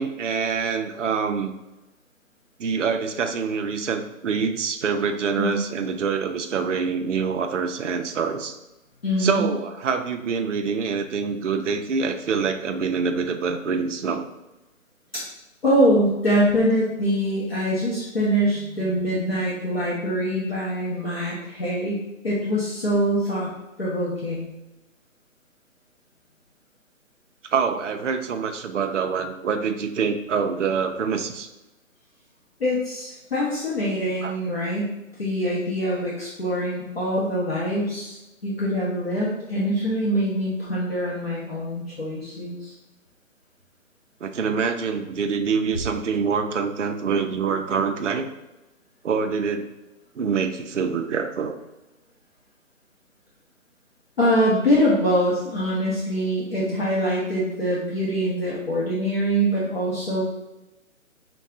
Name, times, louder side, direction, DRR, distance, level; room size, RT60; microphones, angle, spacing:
voice 1, 0.0-1.5 2.6-8.6 9.2-14.2 27.4-31.5 34.2-34.3 44.2-48.3 49.0-49.6 50.2-51.5, right 5 dB, 60° right, 5 dB, 0.5 m, -25 dB
voice 2, 9.0-9.5 15.1-15.2 15.6-23.5 23.8-24.5 32.6-34.9 35.2-38.2 38.4-42.7 54.2-60.2, equal, 45° left, -7 dB, 1.0 m, -24 dB
5.4 x 2.3 x 3.6 m, 0.99 s
hypercardioid pair, 180°, 41 cm